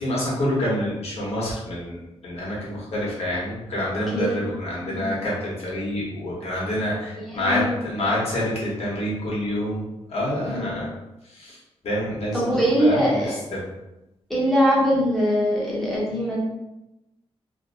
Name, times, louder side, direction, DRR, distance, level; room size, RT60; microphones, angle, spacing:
voice 1, 0.0-10.9 11.3-11.6 11.8-13.6, left 1 dB, 70° left, -6 dB, 1.0 m, -27 dB
voice 2, 4.8-5.1 7.3-7.8 10.4-10.8 12.3-13.3 14.3-16.4, equal, 5° left, -7 dB, 0.8 m, -22 dB
2.6 x 2.1 x 2.6 m, 0.95 s
wide cardioid pair, 165°, 11 cm